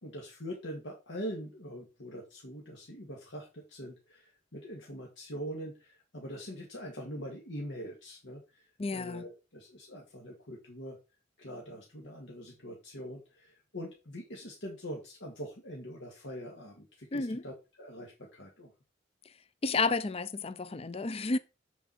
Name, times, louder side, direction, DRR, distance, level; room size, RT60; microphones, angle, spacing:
voice 1, 0.0-11.0 11.4-18.7, equal, 85° left, 2.1 m, -43 dB
voice 2, 8.8-9.2 17.1-17.4 19.6-21.4, left 3 dB, 35° left, 0.5 m, -31 dB
7.1 x 7.1 x 4.3 m
head